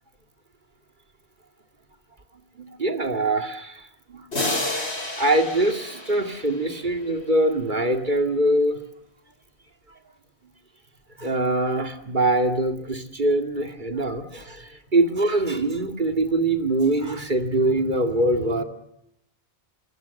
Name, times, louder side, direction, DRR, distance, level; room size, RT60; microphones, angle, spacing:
voice 1, 2.6-4.2 5.2-8.8 11.2-18.6, right 2 dB, 50° right, 6 dB, 2.4 m, -23 dB
sound 1, 4.3-7.0, left 2 dB, 85° left, 5.3 m, -30 dB
26.0 x 23.0 x 7.1 m, 0.78 s
omnidirectional pair, 1.1 m